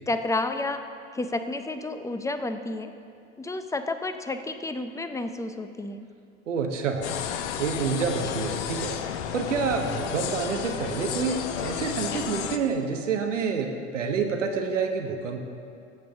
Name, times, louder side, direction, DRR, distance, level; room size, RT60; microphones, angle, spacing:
voice 1, 0.1-0.8 1.1-2.9 3.4-6.1, left 2 dB, 10° left, 9 dB, 0.5 m, -30 dB
voice 2, 6.5-7.1 7.6-9.0 9.3-15.4, right 5 dB, 90° right, 4 dB, 1.1 m, -28 dB
sound 1, 7.0-12.6, left 9 dB, 70° left, 0.8 m, -32 dB
17.5 x 7.6 x 3.5 m, 2.4 s
hypercardioid pair, 80°, 36 cm